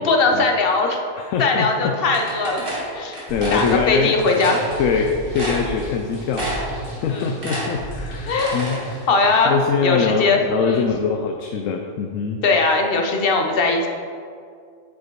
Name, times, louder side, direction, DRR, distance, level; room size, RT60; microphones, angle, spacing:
voice 1, 0.0-1.0 1.4-2.7 2.9-3.2 3.5-4.6 7.1-7.4 8.3-8.6 9.1-9.6 9.8-10.9 12.4-13.9, left 3 dB, 50° left, 3 dB, 1.0 m, -20 dB
voice 2, 1.2-2.3 3.0-4.1 4.8-6.5 7.0-8.8 9.5-12.4, left 6 dB, 85° left, 4 dB, 1.0 m, -23 dB
sound 1, 2.1-3.7 4.3-4.6 5.0-5.1 5.3-6.0 6.3-6.8 7.1-8.8, right 1 dB, 45° right, 2.4 m, -29 dB
sound 2, 3.3-9.1, equal, 25° left, 2.1 m, -34 dB
9.4 x 4.9 x 4.6 m, 2.3 s
omnidirectional pair, 1.3 m